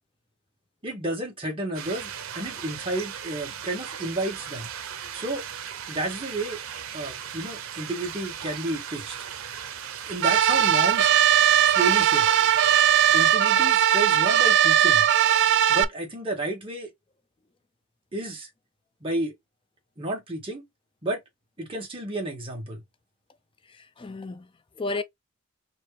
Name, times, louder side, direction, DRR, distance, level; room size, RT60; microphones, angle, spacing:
voice 1, 0.8-4.7 5.1-5.4 5.9-6.6 6.9-9.2 10.0-11.1 11.7-12.3 13.1-15.0 15.7-16.9 18.1-18.5 19.0-19.3 20.0-20.7 21.0-21.2 21.6-22.8, right 1 dB, 25° right, 1.9 m, -31 dB
sound 1, 1.7-13.3, right 8 dB, 90° right, 0.7 m, -37 dB
sound 2, 10.2-15.8, right 10 dB, 55° right, 0.4 m, -19 dB
voice 2, 23.7-25.0, left 3 dB, 25° left, 0.5 m, -34 dB
4.4 x 2.6 x 3.2 m
head